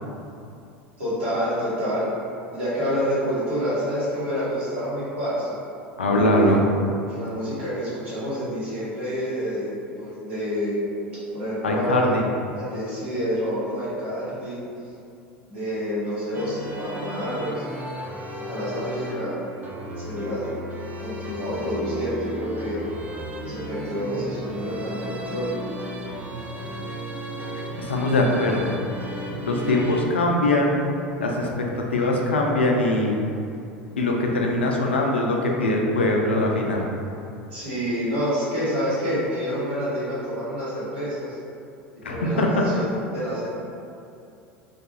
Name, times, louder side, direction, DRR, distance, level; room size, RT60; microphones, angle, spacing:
voice 1, 1.0-2.1 2.5-5.5 6.4-6.5 7.1-10.8 11.3-12.1 12.5-14.6 15.5-17.6 18.3-19.4 20.0-20.5 21.0-22.8 23.4-25.8 37.5-41.4 42.1-43.5, equal, 75° right, -12 dB, 1.2 m, -28 dB
voice 2, 6.0-6.6 11.6-12.2 27.8-28.8 29.4-30.8 31.2-33.2 34.0-36.9 42.0-42.6, left 1 dB, 75° left, 0 dB, 0.3 m, -22 dB
sound 1, 16.3-30.0, equal, 25° right, 0.3 m, -34 dB
2.4 x 2.3 x 2.8 m, 2.6 s
figure-of-eight pair, 75°, 6 cm